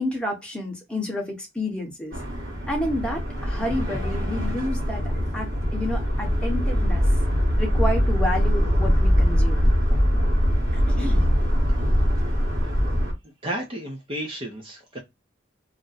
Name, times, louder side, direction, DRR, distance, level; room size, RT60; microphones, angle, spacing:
voice 1, 0.0-2.1 2.7-5.0 5.3-7.0 7.6-9.7 10.7-11.2, left 1 dB, 5° left, 0.9 m, -30 dB
sound 1, 2.1-13.1, equal, 45° right, 1.3 m, -22 dB
voice 2, 13.4-15.0, right 1 dB, 25° right, 0.6 m, -32 dB
2.5 x 2.1 x 3.8 m
head